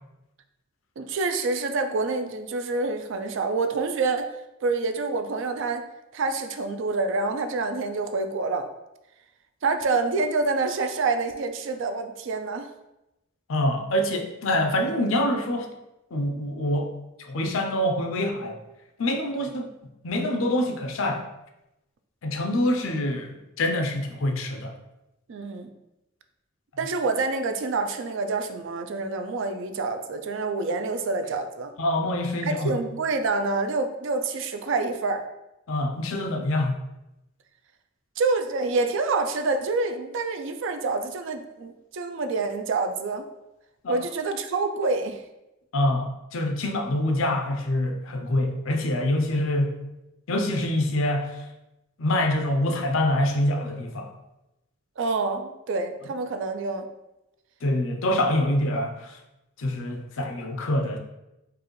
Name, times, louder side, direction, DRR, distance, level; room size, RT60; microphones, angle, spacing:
voice 1, 1.0-4.3 4.6-5.9 6.1-8.7 9.6-12.7 25.3-25.7 26.8-31.7 32.4-35.2 38.2-43.3 43.9-45.2 55.0-56.9, right 3 dB, 65° right, 7 dB, 0.4 m, -27 dB
voice 2, 13.5-15.7 16.1-16.9 17.2-18.6 19.0-19.7 20.0-21.2 22.2-24.7 31.8-32.8 35.7-36.7 43.8-44.0 45.7-49.8 50.3-51.4 52.0-54.1 57.6-59.2 59.6-61.0, left 1 dB, 75° left, 4 dB, 0.6 m, -25 dB
4.7 x 2.5 x 3.1 m, 0.93 s
head